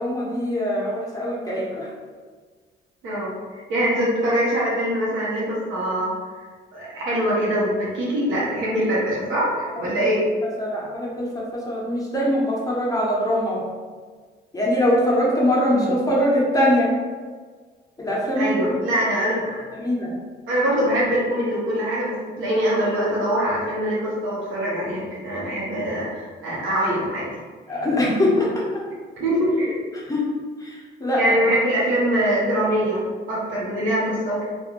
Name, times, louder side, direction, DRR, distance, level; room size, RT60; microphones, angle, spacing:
voice 1, 0.0-1.9 10.0-10.1 10.6-13.6 14.5-16.9 18.0-18.8 19.7-20.1 27.7-28.5 29.9-30.2 30.6-31.4, left 1 dB, 15° left, -5 dB, 0.9 m, -22 dB
voice 2, 3.0-6.1 6.7-10.2 15.7-15.9 18.3-19.6 20.5-27.3 29.2-29.9 31.1-34.4, equal, 80° right, -6 dB, 1.1 m, -23 dB
2.5 x 2.5 x 2.9 m, 1.5 s
cardioid pair, 90°, 20 cm